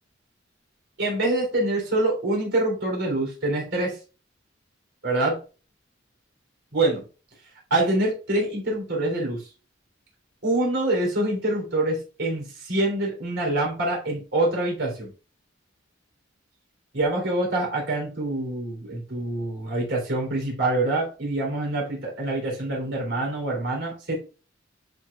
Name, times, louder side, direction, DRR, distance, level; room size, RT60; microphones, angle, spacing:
voice 1, 1.0-4.0 5.0-5.4 6.7-7.0 7.7-9.5 10.4-15.1 16.9-24.1, right 2 dB, 70° right, -1 dB, 3.5 m, -25 dB
10.5 x 4.7 x 2.4 m, 0.35 s
head